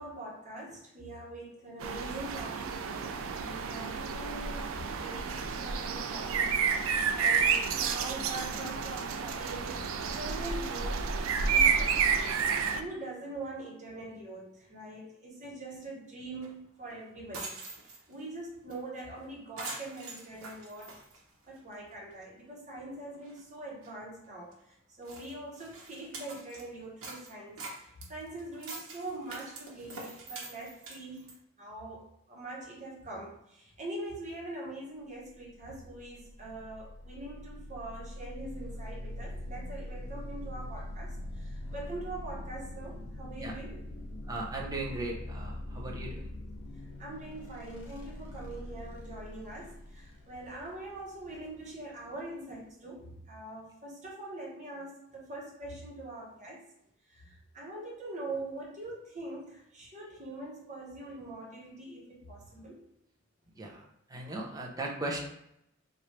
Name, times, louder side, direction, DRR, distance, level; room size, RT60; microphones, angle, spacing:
voice 1, 0.0-11.0 11.5-12.1 12.4-20.9 21.5-31.3 31.6-43.8 46.7-56.6 57.1-62.8, right 2 dB, 35° right, -3 dB, 1.2 m, -43 dB
sound 1, 1.8-12.8, right 6 dB, 75° right, 0.4 m, -30 dB
sound 2, 16.4-16.5 16.9-17.0 17.2-18.2 18.7-18.8 19.1-19.2 19.6-21.7 22.1-22.2 22.8-22.9 23.1-23.4 23.8-23.9 24.5-24.6 25.0-26.7 27.0-31.4, right 3 dB, 90° right, 1.1 m, -45 dB
sound 3, 35.3-52.7, left 1 dB, 85° left, 0.7 m, -43 dB
voice 2, 44.3-46.3 63.5-65.2, right 2 dB, 15° right, -1 dB, 0.7 m, -37 dB
3.2 x 2.6 x 4.4 m, 0.79 s
head